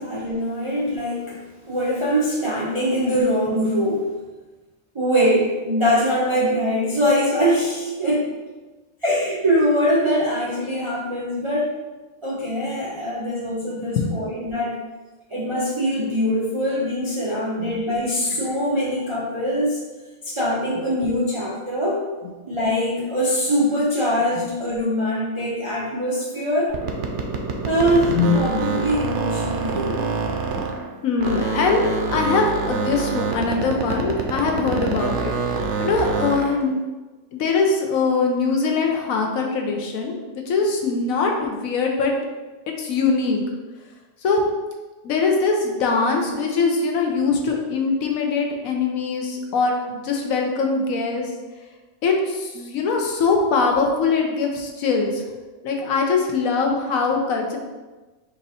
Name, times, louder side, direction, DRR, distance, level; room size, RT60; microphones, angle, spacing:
voice 1, 0.0-1.4 1.7-4.1 4.9-8.3 9.0-11.8 12.2-14.8 15.3-19.8 20.2-22.0 22.4-26.8 27.6-30.0, equal, 50° right, -5 dB, 0.3 m, -22 dB
sound 1, 26.7-30.9 31.2-36.6, right 4 dB, 65° right, 0.8 m, -26 dB
voice 2, 31.0-36.7 37.3-42.1 42.8-43.4 44.2-44.4 45.0-51.3 52.0-55.2 55.6-57.6, left 4 dB, 75° left, 1 dB, 1.1 m, -22 dB
4.4 x 2.7 x 4.0 m, 1.2 s
omnidirectional pair, 1.5 m